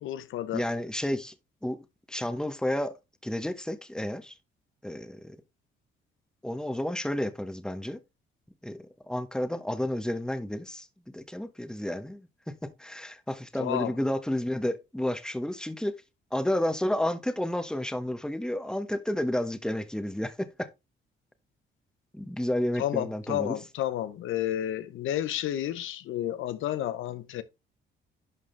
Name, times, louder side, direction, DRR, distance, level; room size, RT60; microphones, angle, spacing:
voice 1, 0.0-0.6 13.6-13.9 22.8-27.4, left 12 dB, 85° left, 0.9 m, -31 dB
voice 2, 0.5-1.3 1.6-2.9 3.2-4.3 4.8-5.4 6.4-8.0 8.6-15.9 16.3-20.7 22.1-23.6, left 1 dB, 5° left, 1.4 m, -31 dB
11.5 x 5.0 x 3.3 m
cardioid pair, 90°, 20 cm